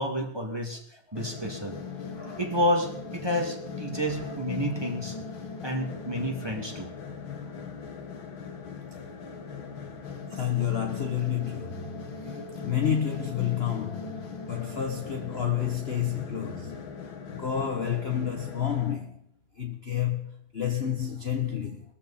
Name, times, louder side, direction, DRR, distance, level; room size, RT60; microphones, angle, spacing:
voice 1, 0.0-1.8 2.4-5.2 5.6-6.9, equal, 15° right, 2.5 m, -30 dB
sound 1, 1.2-18.9, left 5 dB, 90° left, 2.4 m, -39 dB
voice 2, 2.1-2.5 4.1-4.3 10.3-16.8 17.3-19.2 19.6-21.9, left 9 dB, 35° left, 1.2 m, -30 dB
21.5 x 14.5 x 4.3 m
omnidirectional pair, 2.1 m